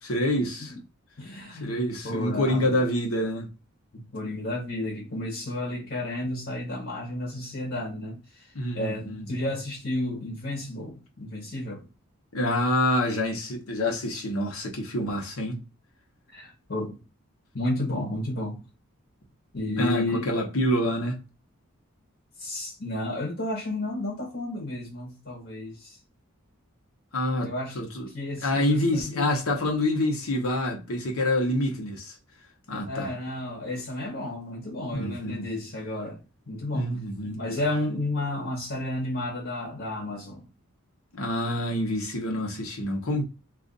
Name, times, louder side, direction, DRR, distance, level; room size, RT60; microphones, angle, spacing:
voice 1, 0.0-0.7 1.6-3.5 8.5-9.2 12.3-15.6 19.8-21.2 27.1-28.1 28.4-32.1 32.7-33.1 34.9-35.4 36.7-37.4 41.1-43.2, left 1 dB, 80° left, 0.9 m, -27 dB
voice 2, 1.2-2.8 3.9-11.8 16.3-17.0 17.5-18.6 19.5-20.4 22.4-26.0 27.4-27.8 28.1-29.2 32.9-36.9 37.2-40.5, left 1 dB, 55° left, 1.0 m, -32 dB
2.5 x 2.4 x 3.8 m
head